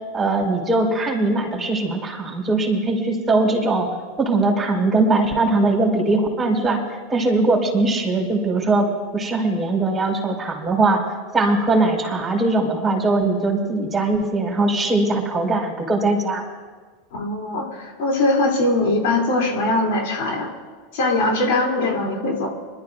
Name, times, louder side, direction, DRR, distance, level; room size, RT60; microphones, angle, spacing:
voice 1, 0.1-3.9 4.2-6.8 7.1-8.9 9.1-11.0 11.3-16.4, right 2 dB, 15° right, 0 dB, 4.5 m, -20 dB
voice 2, 17.1-20.5 20.9-22.5, left 2 dB, 60° left, -1 dB, 3.4 m, -21 dB
26.5 x 12.5 x 2.7 m, 1.4 s
hypercardioid pair, 85°, 0 cm